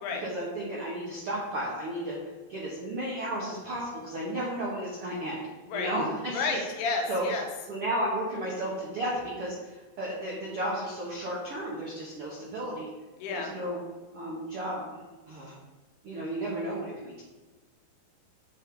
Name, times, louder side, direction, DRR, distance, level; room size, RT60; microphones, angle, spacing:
voice 1, 0.2-2.2 2.5-5.5 5.7-6.6 7.1-7.2 7.7-12.9 13.3-13.8 14.1-14.8 15.3-15.5 16.0-17.2, right 1 dB, 70° right, -5 dB, 1.3 m, -33 dB
voice 2, 6.3-7.5 13.2-13.5, left 4 dB, 80° left, 2 dB, 3.0 m, -31 dB
9.0 x 4.5 x 3.8 m, 1.2 s
omnidirectional pair, 4.6 m